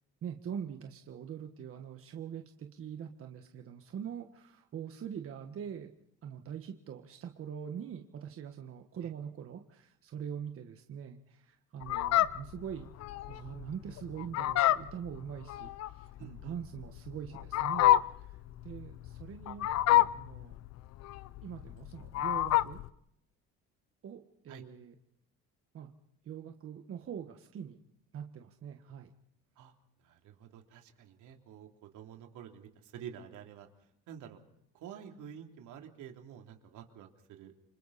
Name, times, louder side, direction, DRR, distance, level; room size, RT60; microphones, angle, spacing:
voice 1, 0.2-5.9 6.2-12.9 13.3-18.3 18.6-20.5 21.4-22.8 24.0-24.9 25.7-25.9 26.2-27.8 28.1-29.1, right 8 dB, 45° right, 5 dB, 1.5 m, -43 dB
Fowl, 11.8-22.9, left 14 dB, 55° left, 0.7 m, -29 dB
voice 2, 16.2-16.5 24.5-24.6 29.6-29.7 30.0-33.7 34.1-34.4 34.7-37.5, right 8 dB, 75° right, 3 dB, 3.3 m, -49 dB
29.0 x 25.5 x 4.2 m, 0.77 s
cardioid pair, 135°, 31 cm